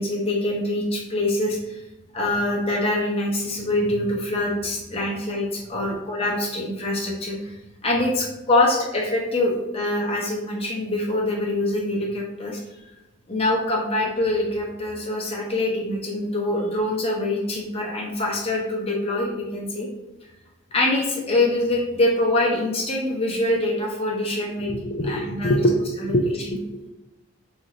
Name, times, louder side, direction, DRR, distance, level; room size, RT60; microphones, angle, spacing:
voice 1, 0.0-1.8 2.1-7.5 7.8-12.6 13.3-19.9 20.7-24.7 25.0-25.6 26.0-26.1 26.5-26.6, left 1 dB, 30° left, -2 dB, 0.7 m, -24 dB
voice 2, 24.7-26.9, equal, 45° left, -1 dB, 0.3 m, -24 dB
3.9 x 2.5 x 3.0 m, 0.99 s
head